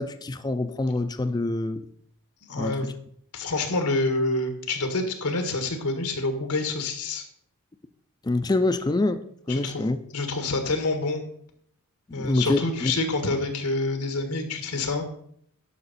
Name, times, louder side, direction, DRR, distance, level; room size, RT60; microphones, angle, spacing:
voice 1, 0.0-1.9 2.6-2.9 8.2-9.2 9.5-10.0 12.2-12.9, left 2 dB, 20° left, 9 dB, 0.4 m, -25 dB
voice 2, 2.4-2.9 3.3-7.2 9.5-9.9 10.1-11.2 12.1-15.0, left 2 dB, 90° left, 6 dB, 1.6 m, -27 dB
11.0 x 6.0 x 4.2 m, 0.65 s
head